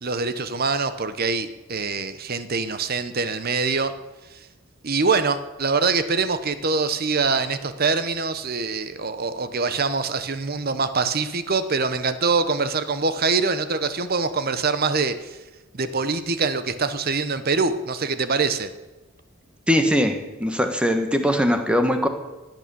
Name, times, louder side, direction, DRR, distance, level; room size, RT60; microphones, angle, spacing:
voice 1, 0.0-3.9 4.8-15.4 15.7-18.7, right 4 dB, 45° right, 11 dB, 1.0 m, -24 dB
voice 2, 19.7-22.1, equal, 5° right, 6 dB, 1.3 m, -21 dB
17.0 x 9.1 x 7.0 m, 1.1 s
head